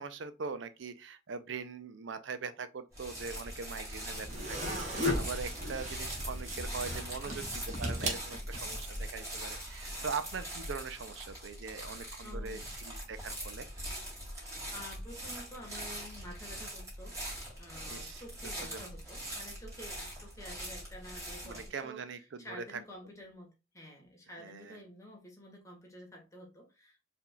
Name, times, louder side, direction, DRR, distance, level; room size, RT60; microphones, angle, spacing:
voice 1, 0.0-13.7 17.9-18.2 18.6-18.9 21.4-22.8 24.4-24.8, right 5 dB, 65° right, 0.5 m, -42 dB
sound 1, 2.9-21.7, right 1 dB, 15° right, 2.4 m, -42 dB
sound 2, 4.1-8.9, equal, 40° right, 1.3 m, -36 dB
voice 2, 12.2-12.7 14.4-17.1 17.5-22.0 22.4-27.1, equal, 15° left, 1.6 m, -50 dB
4.7 x 3.5 x 2.3 m
head